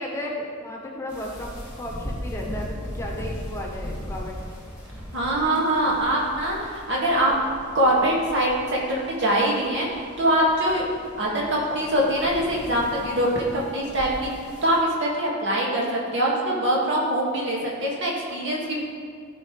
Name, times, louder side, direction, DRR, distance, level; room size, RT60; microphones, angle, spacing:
voice 1, 0.0-4.3, left 1 dB, 15° left, -2 dB, 1.1 m, -34 dB
sound 1, 1.1-14.8, equal, 5° right, 2.1 m, -38 dB
voice 2, 5.1-7.3 7.7-10.9 11.2-14.3 14.6-18.8, right 1 dB, 60° right, -4 dB, 2.0 m, -23 dB
14.0 x 5.4 x 3.3 m, 2.1 s
head